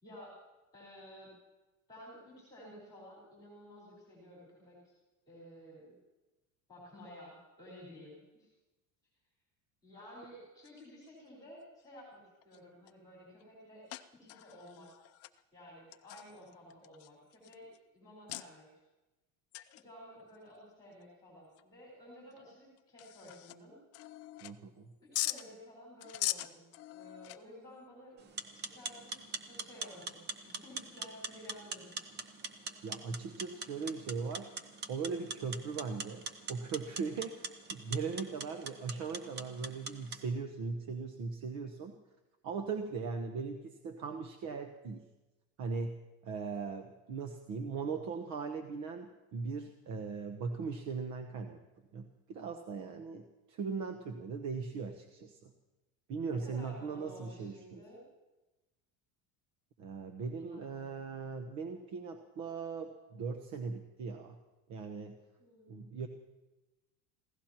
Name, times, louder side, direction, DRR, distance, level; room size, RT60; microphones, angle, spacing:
voice 1, 0.0-0.3 0.7-1.3 1.9-4.9 5.3-6.0 6.7-8.5 9.8-13.8 14.1-15.0 15.5-18.7 19.7-23.8 25.0-28.2 28.5-29.2 29.4-31.9 56.3-58.1 60.4-61.3 65.4-65.8, equal, 10° left, -4 dB, 4.5 m, -53 dB
sound 1, 10.6-11.1 11.9-12.0 12.4-12.9 13.4-13.5 13.9-15.4 15.9-17.8 18.3-18.4 19.5-19.8 20.2-20.3 20.9-21.0 21.5-21.6 22.3-22.4 22.8-23.6 23.9-24.8 25.1-25.4 26.0-27.7, left 16 dB, 35° left, 0.5 m, -41 dB
voice 2, 24.4-24.9 32.8-34.5 34.9-41.9 42.4-45.0 45.6-46.0 46.2-51.6 51.9-55.5 56.1-57.8 59.8-64.4 64.7-65.1 65.7-66.1, right 5 dB, 45° right, 5 dB, 1.1 m, -39 dB
sound 2, 28.2-40.2, right 4 dB, 25° right, 0.9 m, -44 dB
27.5 x 16.5 x 3.0 m, 1.1 s
cardioid pair, 165°, 40 cm